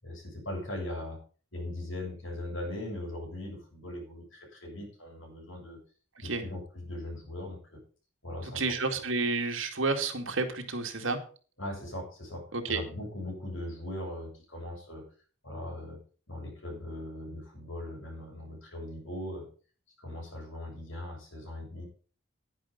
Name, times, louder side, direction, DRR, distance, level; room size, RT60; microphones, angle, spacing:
voice 1, 0.0-1.2 1.5-5.8 6.2-7.8 8.2-9.0 11.6-15.0 15.4-16.0 16.3-19.5 20.0-21.8, left 1 dB, 75° left, 0 dB, 7.6 m, -39 dB
voice 2, 8.6-11.2 12.5-12.8, right 3 dB, 75° right, 5 dB, 2.2 m, -30 dB
10.5 x 10.5 x 5.3 m, 0.39 s
head